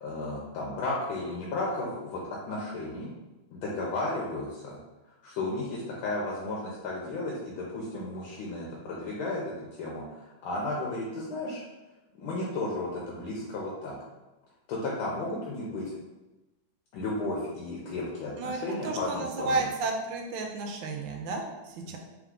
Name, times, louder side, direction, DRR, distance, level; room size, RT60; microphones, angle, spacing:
voice 1, 0.0-3.1 3.5-4.8 5.2-11.6 12.1-14.0 14.7-15.9 16.9-19.6 21.9-22.0, left 2 dB, 85° left, -4 dB, 1.5 m, -34 dB
voice 2, 18.4-22.0, right 3 dB, 75° right, 2 dB, 1.3 m, -32 dB
3.6 x 3.3 x 3.6 m, 1.1 s
omnidirectional pair, 2.2 m